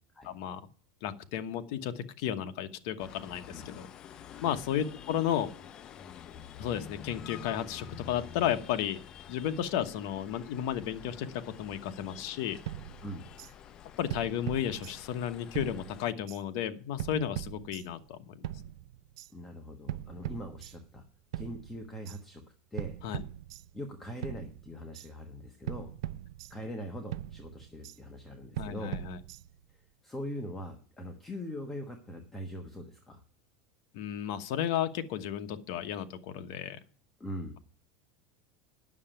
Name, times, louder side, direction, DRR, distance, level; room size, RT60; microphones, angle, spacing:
voice 1, 0.2-0.6 1.0-3.9 4.4-5.5 6.6-9.0 9.3-12.6 14.0-18.5 23.0-23.2 28.6-29.2 33.9-36.8, left 10 dB, 60° left, 8 dB, 1.1 m, -33 dB
sound 1, 3.0-16.1, left 9 dB, 30° left, 0.5 m, -49 dB
sound 2, 12.7-13.5 14.1-15.3 15.5-16.4 17.0-18.1 18.4-19.3 19.9-21.0 21.3-22.2 22.8-23.9 24.2-25.1 25.7-26.8 27.1-28.0 28.6-29.7, right 13 dB, 75° right, 0.5 m, -41 dB
voice 2, 19.3-21.0 21.3-22.4 22.7-23.0 23.7-25.9 26.5-29.0 30.0-33.2 37.2-37.6, equal, 10° left, 3 dB, 1.2 m, -41 dB
9.6 x 6.7 x 8.9 m, 0.44 s
supercardioid pair, 155°, 3 cm